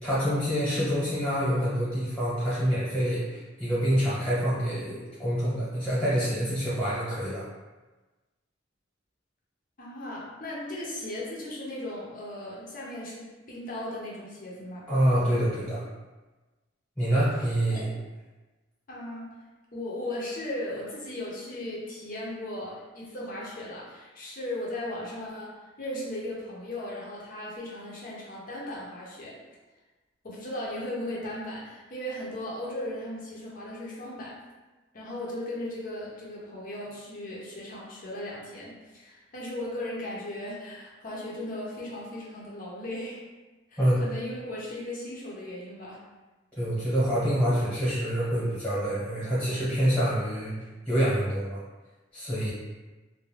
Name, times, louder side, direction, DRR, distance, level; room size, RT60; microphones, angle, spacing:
voice 1, 0.0-7.5 14.9-15.8 17.0-17.9 43.8-44.0 46.6-50.5 50.9-51.6 52.1-52.5, equal, 5° left, -10 dB, 0.9 m, -26 dB
voice 2, 9.8-14.9 17.7-17.9 18.9-19.3 19.7-29.4 30.2-34.4 34.9-43.2 43.7-46.0, left 1 dB, 45° left, -4 dB, 0.6 m, -37 dB
2.4 x 2.1 x 3.1 m, 1.2 s
head